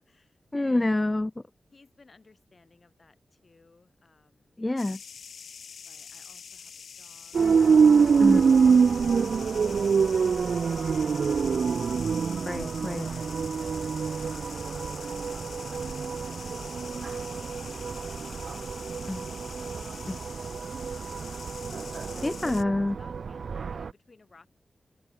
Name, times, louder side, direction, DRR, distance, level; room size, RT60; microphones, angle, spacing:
voice 1, 0.0-0.9 1.7-4.6 5.8-7.4 9.8-11.6 12.9-20.7 21.7-22.6 23.0-24.5, left 3 dB, 40° left, 6.4 m, -60 dB
voice 2, 0.5-1.4 4.6-5.0 8.2-8.4 12.5-13.0 19.1-19.3 20.1-20.2 22.2-23.0, left 2 dB, 20° left, 0.4 m, -27 dB
sound 1, 4.8-22.6, left 6 dB, 85° left, 1.3 m, -45 dB
sound 2, 7.3-23.9, right 5 dB, 70° right, 0.4 m, -26 dB
open air
wide cardioid pair, 95°, 0 cm